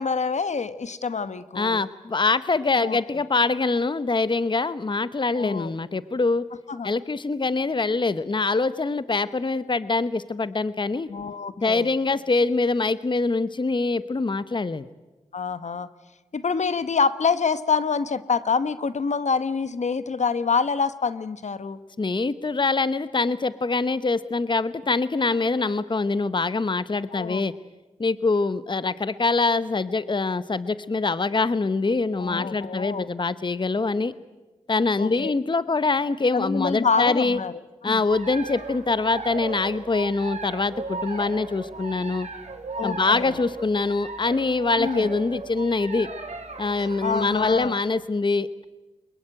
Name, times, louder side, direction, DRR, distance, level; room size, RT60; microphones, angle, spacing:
voice 1, 0.0-1.9 2.8-3.0 5.3-5.7 6.7-6.9 11.1-11.9 15.3-15.9 16.3-21.8 27.1-27.4 32.2-33.1 35.0-35.3 36.3-37.5 37.8-38.0 42.8-43.4 44.8-45.1 47.0-47.7, left 5 dB, 65° left, 14 dB, 1.0 m, -26 dB
voice 2, 1.5-6.5 6.8-11.1 11.6-14.8 22.0-27.5 28.0-34.1 34.7-37.4 37.8-42.3 42.8-46.1 46.6-48.6, left 3 dB, 40° left, 15 dB, 0.8 m, -24 dB
sound 1, 38.1-47.7, right 3 dB, 60° right, 3.1 m, -36 dB
22.0 x 21.5 x 9.0 m, 1.2 s
cardioid pair, 40°, 13 cm